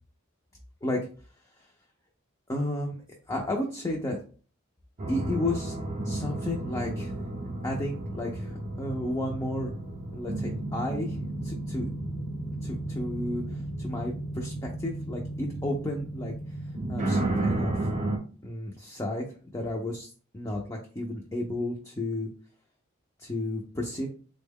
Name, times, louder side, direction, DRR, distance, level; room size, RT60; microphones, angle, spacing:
voice 1, 2.5-3.0 3.3-4.2 5.1-5.7 6.0-7.1 7.6-9.7 10.1-11.2 11.4-11.9 12.6-13.4 13.8-16.3 16.9-17.7 18.4-20.1 20.3-22.3 23.2-24.1, left 1 dB, 15° left, -1 dB, 0.5 m, -32 dB
sound 1, 5.0-18.2, right 2 dB, 40° right, 0.6 m, -33 dB
3.7 x 2.1 x 3.5 m, 0.40 s
head